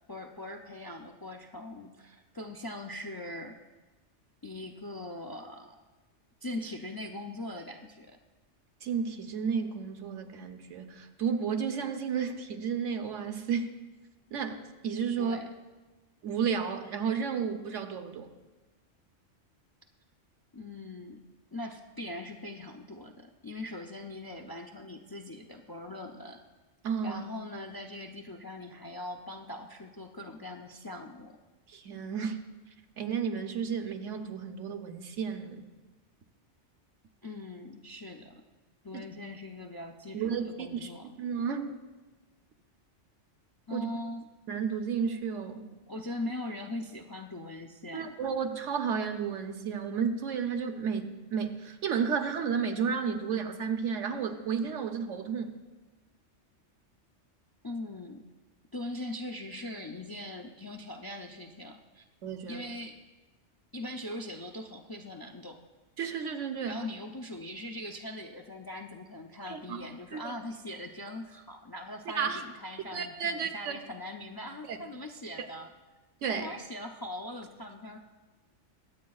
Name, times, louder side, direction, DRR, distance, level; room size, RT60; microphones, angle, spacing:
voice 1, 0.1-3.6 4.4-5.8 6.4-8.2 15.2-15.5 20.5-21.2 21.5-26.4 27.0-31.4 37.2-38.4 38.8-41.1 43.7-44.3 45.9-48.2 57.6-58.2 58.7-62.0 62.5-63.0 63.7-65.6 66.7-75.7 76.3-78.0, left 1 dB, 40° left, 3 dB, 0.3 m, -41 dB
voice 2, 8.8-13.7 14.3-15.4 16.2-18.3 26.8-27.2 31.7-32.4 33.0-35.6 40.1-40.9 41.2-41.7 43.7-43.9 44.5-45.6 47.9-55.5 62.2-62.7 66.0-66.8 69.5-69.9 70.1-70.4 72.1-72.4 72.9-73.8 74.7-74.8 75.4-75.5 76.2-76.5, right 6 dB, 90° right, 6 dB, 1.2 m, -32 dB
22.5 x 8.4 x 2.4 m, 1.2 s
omnidirectional pair, 1.2 m